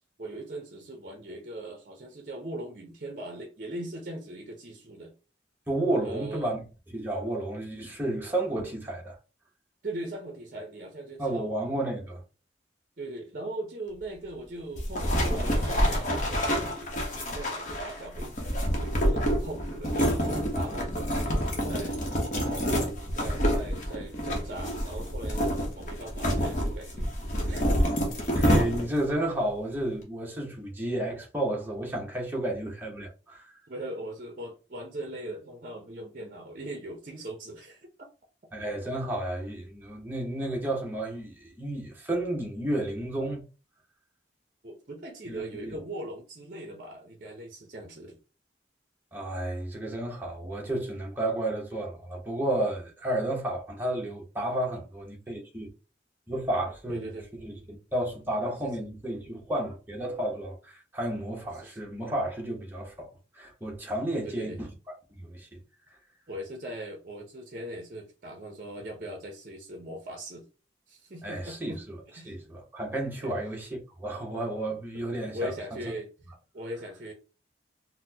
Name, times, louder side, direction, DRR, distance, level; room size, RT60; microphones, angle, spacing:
voice 1, 0.2-5.1 6.0-6.5 9.8-11.5 13.0-18.3 18.8-22.0 22.4-27.1 27.5-27.7 33.7-37.9 44.6-48.2 56.9-57.3 61.6-61.8 64.1-64.6 66.3-70.4 70.9-71.8 72.1-72.4 73.2-73.3 75.3-76.1 76.5-77.1, right 1 dB, 45° right, 0.6 m, -40 dB
voice 2, 5.7-6.6 6.9-9.2 11.2-12.2 28.3-33.5 38.5-43.4 45.3-45.7 49.1-55.7 56.3-63.1 63.3-64.7 65.2-65.6 71.2-72.0 72.2-75.8, right 1 dB, 10° right, 0.8 m, -32 dB
sound 1, 14.8-29.1, equal, 40° left, 0.8 m, -27 dB
4.0 x 2.1 x 2.7 m
head